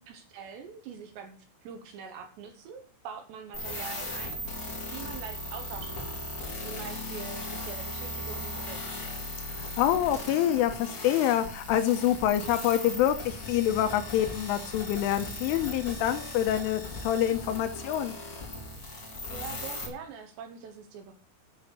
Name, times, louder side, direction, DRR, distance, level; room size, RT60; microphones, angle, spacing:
voice 1, 0.1-9.3 19.3-21.1, right 6 dB, 70° right, 6 dB, 2.9 m, -44 dB
sound 1, 3.5-19.9, left 1 dB, 25° left, 3.0 m, -38 dB
voice 2, 9.6-18.1, left 11 dB, 80° left, 8 dB, 3.2 m, -26 dB
9.9 x 6.9 x 8.0 m, 0.41 s
omnidirectional pair, 5.9 m